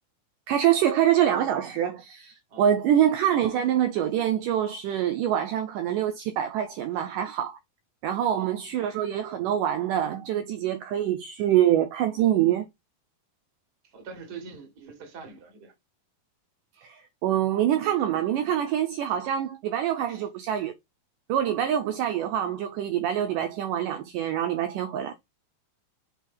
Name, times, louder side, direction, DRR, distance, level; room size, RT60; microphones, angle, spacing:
voice 1, 0.5-7.6 8.0-12.7 16.8-20.7 21.3-25.1, right 10 dB, 80° right, 2.0 m, -25 dB
voice 2, 13.9-15.7 20.1-20.2, right 4 dB, 35° right, 1.8 m, -43 dB
5.6 x 4.5 x 3.8 m
omnidirectional pair, 4.1 m